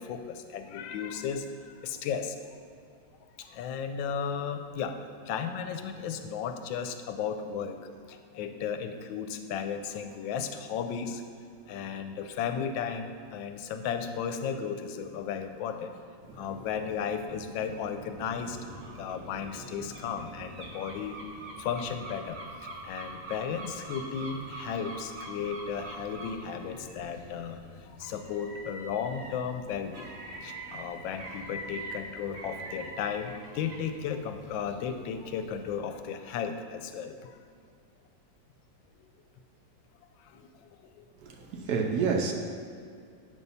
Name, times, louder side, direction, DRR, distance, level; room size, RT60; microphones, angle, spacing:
voice 1, 0.0-2.6 3.4-11.3 11.7-16.0 16.3-18.6 19.0-21.2 21.6-22.4 22.8-30.1 30.4-37.4 39.0-39.1 40.2-41.1 41.4-41.5, left 7 dB, 85° left, 8 dB, 1.3 m, -35 dB
sound 1, 16.2-35.8, right 1 dB, 40° right, 1.1 m, -44 dB
voice 2, 41.2-42.3, right 5 dB, 70° right, 3 dB, 1.0 m, -28 dB
8.1 x 5.4 x 5.5 m, 2.2 s
omnidirectional pair, 2.1 m